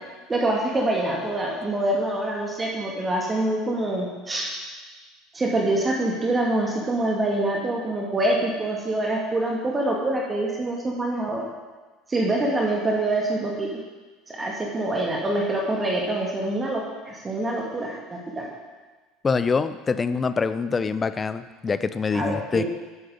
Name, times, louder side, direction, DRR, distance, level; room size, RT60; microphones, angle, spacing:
voice 1, 0.3-4.5 5.3-11.4 12.1-13.8 14.3-18.5 22.1-22.6, right 1 dB, 20° right, -2 dB, 2.3 m, -25 dB
voice 2, 19.2-22.6, left 5 dB, 25° left, 13 dB, 0.5 m, -25 dB
11.5 x 9.7 x 3.9 m, 1.3 s
figure-of-eight pair, 65°, 0 cm